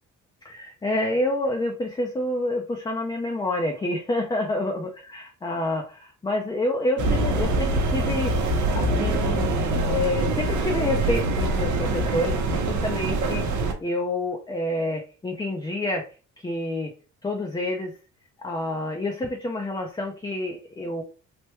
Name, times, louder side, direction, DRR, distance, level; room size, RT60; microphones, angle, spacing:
voice 1, 0.4-9.5 9.8-16.1 16.4-16.9 17.2-17.9 18.4-21.0, left 1 dB, 15° left, 2 dB, 0.5 m, -28 dB
sound 1, 7.0-13.7, right 2 dB, 70° right, 0.7 m, -24 dB
3.3 x 2.1 x 2.9 m, 0.35 s
cardioid pair, 90°, 30 cm